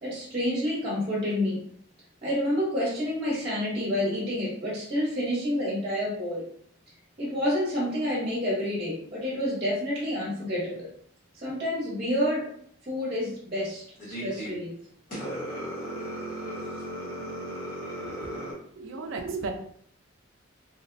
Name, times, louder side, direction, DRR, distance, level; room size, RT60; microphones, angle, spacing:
voice 1, 0.0-1.6 2.2-6.4 7.2-10.9 11.3-12.5 12.9-14.7, left 1 dB, 30° right, -6 dB, 0.8 m, -29 dB
sound 1, 14.0-14.5 15.1-18.5, right 1 dB, 40° left, 0.9 m, -36 dB
voice 2, 18.0-18.5 18.8-19.5, right 4 dB, 65° right, 4 dB, 0.4 m, -35 dB
2.9 x 2.0 x 2.5 m, 0.63 s
head